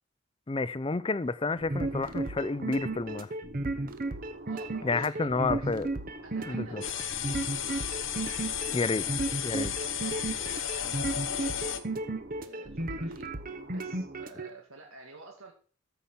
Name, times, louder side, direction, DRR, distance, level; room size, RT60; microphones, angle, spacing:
voice 1, 0.5-3.3 4.8-5.9 6.5-6.8 8.7-9.0 9.4-9.7, left 3 dB, 25° left, 0.4 m, -30 dB
sound 1, 1.6-14.5, right 2 dB, 45° right, 0.9 m, -34 dB
voice 2, 4.5-5.7 6.2-8.0 8.9-11.8 12.4-13.3 13.7-15.5, right 3 dB, 85° right, 2.2 m, -51 dB
sound 2, 6.8-11.8, left 10 dB, 65° left, 1.1 m, -33 dB
14.0 x 5.9 x 5.7 m
head